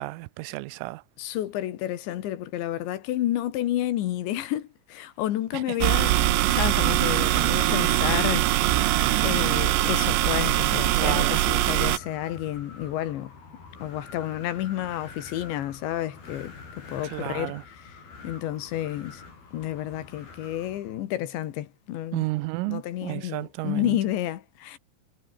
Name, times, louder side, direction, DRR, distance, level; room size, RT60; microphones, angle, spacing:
voice 1, 0.0-1.0 10.9-11.4 17.1-17.6 22.1-24.0, right 22 dB, 90° right, 3.4 m, -31 dB
voice 2, 1.2-8.8 9.2-13.3 13.8-16.6 16.9-19.2 19.5-22.3 22.7-24.8, left 13 dB, 70° left, 3.6 m, -30 dB
sound 1, 5.8-12.0, right 15 dB, 70° right, 3.1 m, -22 dB
Wind, 7.4-21.1, left 4 dB, 50° left, 8.9 m, -47 dB
omnidirectional pair, 5.7 m